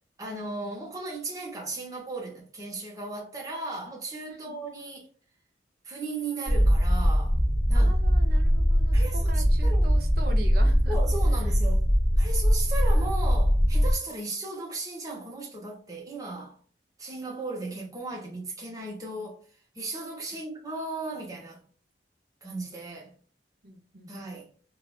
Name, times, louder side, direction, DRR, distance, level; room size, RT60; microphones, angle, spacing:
voice 1, 0.2-5.1 5.8-7.4 7.7-7.9 8.9-9.9 10.9-11.8 12.2-16.6 17.0-19.4 19.7-21.6 22.4-23.1 24.1-24.5, right 2 dB, 20° right, 0.9 m, -36 dB
voice 2, 4.3-4.6 7.7-11.0 20.3-20.4 23.6-24.1, right 2 dB, 60° right, 0.7 m, -42 dB
sound 1, 6.5-13.9, equal, 45° left, 1.3 m, -22 dB
3.4 x 2.4 x 2.3 m
head